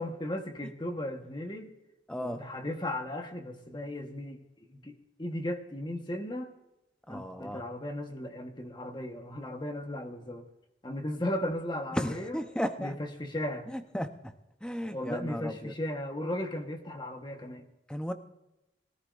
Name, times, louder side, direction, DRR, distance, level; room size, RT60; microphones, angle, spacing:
voice 1, 0.0-1.7 2.2-4.4 4.7-6.5 7.1-10.5 10.8-12.4 12.8-12.9 13.2-13.7 14.9-17.6, left 1 dB, 25° left, 5 dB, 1.2 m, -36 dB
voice 2, 2.1-2.5 7.1-7.6 11.9-13.0 13.7-14.3 14.6-15.7 17.9-18.1, equal, 5° left, 7 dB, 0.8 m, -35 dB
22.5 x 14.0 x 2.6 m, 0.94 s
head